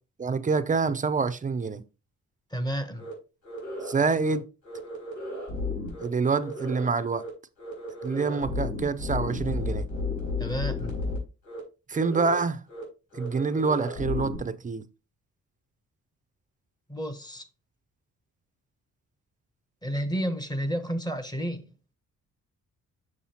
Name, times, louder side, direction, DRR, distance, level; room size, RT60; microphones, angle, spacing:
voice 1, 0.2-1.8 3.8-4.4 6.0-7.3 8.0-9.9 11.9-12.6 13.2-14.8, right 4 dB, 25° right, 0.5 m, -26 dB
voice 2, 2.5-3.1 10.4-10.9 16.9-17.4 19.8-21.7, equal, 10° left, 1.0 m, -31 dB
sound 1, 3.0-3.1 3.4-3.9 4.2-4.4 4.6-6.1 6.4-6.9 7.1-7.3 7.6-11.2 11.4-11.6 11.9-12.4 12.7-12.8 13.1-14.4, left 3 dB, 70° left, 4.3 m, -33 dB
7.2 x 6.4 x 2.9 m
cardioid pair, 110°, 32 cm